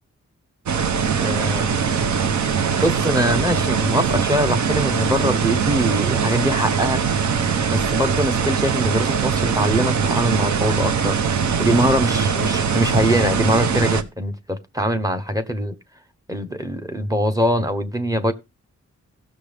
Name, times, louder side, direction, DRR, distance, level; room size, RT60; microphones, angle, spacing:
sound 1, 0.7-14.0, right 6 dB, 75° right, 0.9 m, -21 dB
voice 1, 1.2-1.8 2.8-7.0 7.3-11.2 11.6-15.8 16.3-18.3, equal, 10° right, 0.8 m, -22 dB
16.5 x 6.3 x 3.4 m
wide cardioid pair, 170°, 30 cm